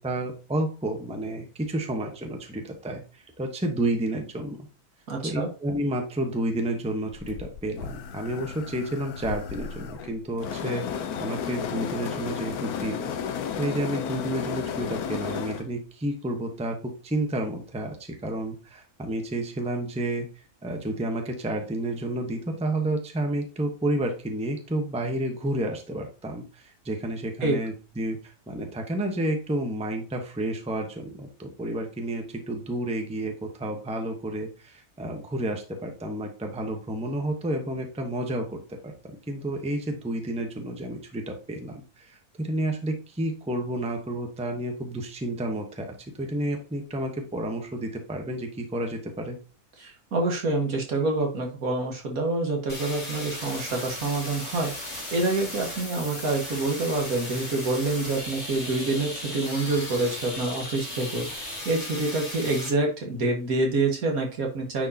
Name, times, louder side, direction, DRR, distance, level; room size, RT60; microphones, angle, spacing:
voice 1, 0.0-4.6 5.2-13.1 13.5-16.8 17.0-18.0 18.2-20.3 20.6-45.9 46.2-49.4, right 1 dB, 5° right, 3 dB, 0.9 m, -30 dB
voice 2, 5.1-5.5 27.4-27.6 49.8-64.9, right 2 dB, 65° right, 1 dB, 2.0 m, -27 dB
sound 1, 7.1-15.7, left 7 dB, 75° left, 1.2 m, -33 dB
sound 2, 52.7-62.7, left 1 dB, 20° left, 2.2 m, -36 dB
9.7 x 4.7 x 2.8 m, 0.34 s
omnidirectional pair, 1.6 m